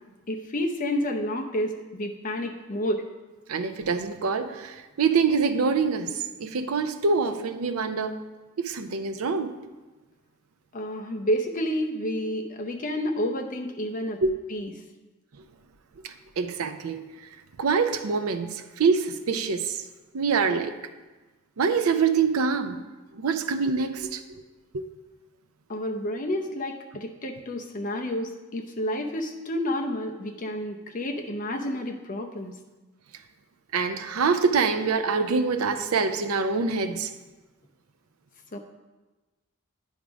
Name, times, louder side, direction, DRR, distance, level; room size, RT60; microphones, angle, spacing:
voice 1, 0.3-3.1 10.7-14.2 14.5-14.7 25.7-32.6 38.5-38.6, equal, 40° left, 3 dB, 0.7 m, -30 dB
voice 2, 3.5-8.2 8.6-9.5 14.2-14.3 16.0-17.0 17.6-19.8 20.1-20.7 21.6-22.8 23.1-24.2 24.7-24.9 33.7-37.1, right 5 dB, 90° right, 8 dB, 0.5 m, -25 dB
10.0 x 3.6 x 5.0 m, 1.2 s
head